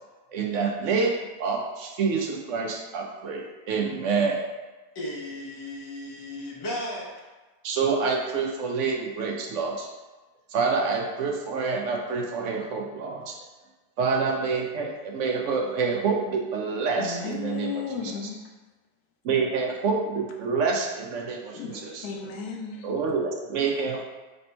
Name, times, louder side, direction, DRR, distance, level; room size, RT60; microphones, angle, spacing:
voice 1, 0.3-1.1 1.4-4.5 7.6-9.9 10.5-13.4 14.0-17.7 19.2-21.4 21.7-22.1 22.8-24.0, right 4 dB, 65° right, 0 dB, 0.8 m, -27 dB
voice 2, 4.9-7.1, left 1 dB, 35° left, -3 dB, 0.4 m, -35 dB
voice 3, 17.0-18.4 21.5-22.9, left 6 dB, 80° left, 2 dB, 1.1 m, -34 dB
3.3 x 2.9 x 4.3 m, 1.2 s
omnidirectional pair, 1.6 m